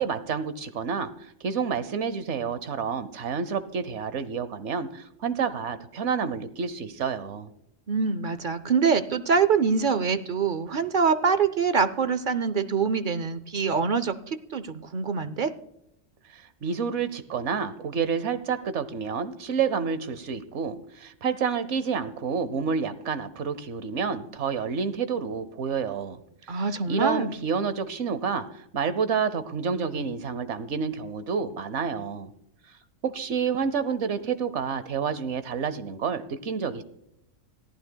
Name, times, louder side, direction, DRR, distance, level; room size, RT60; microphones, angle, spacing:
voice 1, 0.0-7.5 16.3-26.2 26.5-28.5 28.7-32.3 33.0-36.8, right 6 dB, 75° right, 13 dB, 1.1 m, -29 dB
voice 2, 7.9-15.5 26.5-27.3, right 5 dB, 50° right, 13 dB, 0.7 m, -25 dB
25.5 x 15.0 x 2.2 m, 0.81 s
omnidirectional pair, 1.2 m